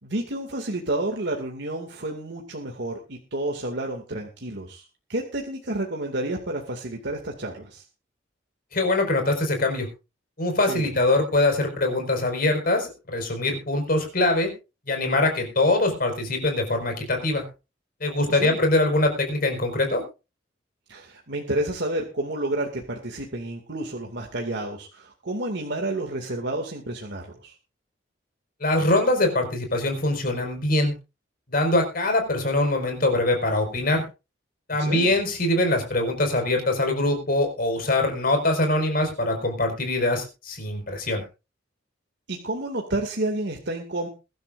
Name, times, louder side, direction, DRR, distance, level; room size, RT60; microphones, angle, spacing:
voice 1, 0.0-7.8 10.6-10.9 18.2-18.6 20.9-27.5 34.7-35.1 42.3-44.1, right 1 dB, 65° right, 1 dB, 2.3 m, -30 dB
voice 2, 8.7-9.9 10.4-14.5 14.9-17.4 18.0-20.0 28.6-30.9 31.5-34.0 34.7-41.2, left 2 dB, 50° left, 4 dB, 5.0 m, -23 dB
22.5 x 11.5 x 2.6 m, 0.30 s
head